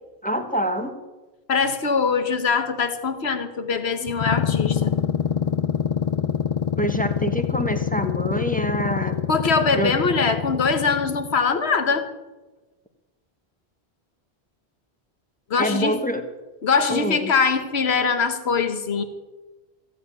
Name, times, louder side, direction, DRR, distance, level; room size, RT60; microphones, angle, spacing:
voice 1, 0.2-0.9 6.2-6.5 6.8-9.2 9.7-10.0 15.6-16.2 16.9-17.3, equal, 10° left, 6 dB, 1.1 m, -26 dB
voice 2, 1.5-4.9 9.3-12.1 15.5-16.0 16.6-19.0, left 5 dB, 75° left, 9 dB, 1.5 m, -22 dB
sound 1, 4.1-11.4, left 7 dB, 45° left, 0.4 m, -25 dB
15.5 x 8.2 x 8.5 m, 1.2 s
omnidirectional pair, 1.1 m